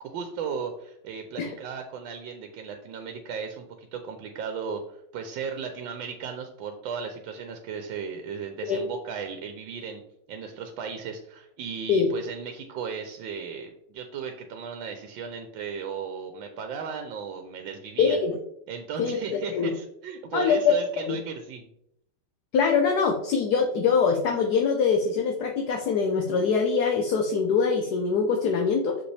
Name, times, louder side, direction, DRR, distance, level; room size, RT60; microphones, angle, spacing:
voice 1, 0.0-10.0 10.3-18.2 18.7-21.7, right 6 dB, 85° right, 6 dB, 1.4 m, -36 dB
voice 2, 18.0-18.4 19.0-19.2 19.5-19.7 20.3-21.2 22.5-29.0, left 5 dB, 65° left, 3 dB, 1.1 m, -23 dB
6.7 x 5.2 x 3.3 m, 0.76 s
omnidirectional pair, 2.1 m